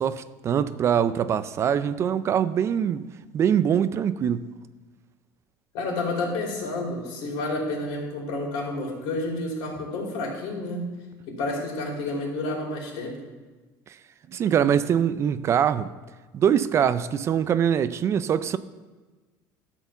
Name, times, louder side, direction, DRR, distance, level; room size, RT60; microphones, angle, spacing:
voice 1, 0.0-3.1 3.3-4.5 14.3-15.9 16.3-18.6, right 8 dB, 35° right, 0.4 m, -23 dB
voice 2, 5.7-10.8 11.3-13.2, left 2 dB, 70° left, 3.3 m, -30 dB
12.5 x 4.4 x 6.9 m
cardioid pair, 140°, 8 cm